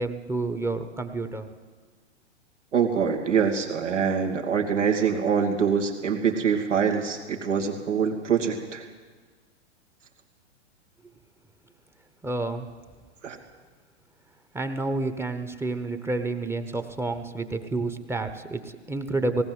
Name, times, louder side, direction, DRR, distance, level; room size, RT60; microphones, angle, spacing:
voice 1, 0.0-1.5 12.2-12.7 14.5-19.4, right 2 dB, 5° right, 8 dB, 1.0 m, -29 dB
voice 2, 2.7-8.8 13.2-13.4, right 6 dB, 85° right, 2 dB, 2.9 m, -24 dB
18.5 x 17.5 x 8.1 m, 1.5 s
hypercardioid pair, 120°, 35 cm